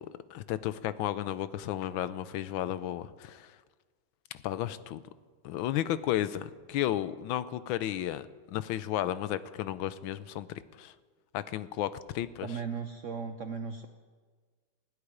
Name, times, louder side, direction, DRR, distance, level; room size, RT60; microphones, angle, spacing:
voice 1, 0.0-3.5 4.4-5.0 5.4-10.5 10.8-10.9 11.3-12.5, left 12 dB, 90° left, 14 dB, 1.4 m, -33 dB
voice 2, 12.4-13.9, right 5 dB, 65° right, 7 dB, 0.7 m, -36 dB
15.5 x 8.3 x 10.0 m, 1.5 s
omnidirectional pair, 2.2 m